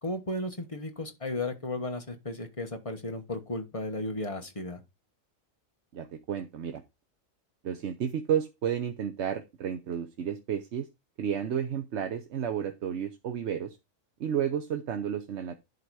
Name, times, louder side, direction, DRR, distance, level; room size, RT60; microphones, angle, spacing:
voice 1, 0.0-4.8, left 2 dB, 25° left, 1.2 m, -34 dB
voice 2, 5.9-6.8 7.6-10.9 11.2-13.8 14.2-15.6, right 8 dB, 60° right, 1.0 m, -32 dB
11.0 x 3.9 x 4.7 m
omnidirectional pair, 1.4 m